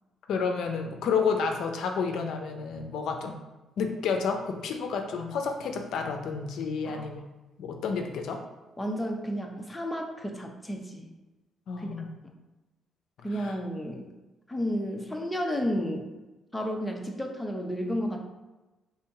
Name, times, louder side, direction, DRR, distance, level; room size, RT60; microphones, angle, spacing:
voice 1, 0.3-3.4 3.8-7.2 7.6-8.4 11.7-12.1 13.4-13.5, left 5 dB, 75° left, 4 dB, 0.5 m, -30 dB
voice 2, 8.8-11.1 11.8-11.9 12.2-12.3 13.2-14.1 14.5-16.1 16.5-18.2, equal, 10° left, 1 dB, 0.7 m, -32 dB
3.4 x 2.8 x 4.7 m, 1.1 s
cardioid pair, 90°, 0 cm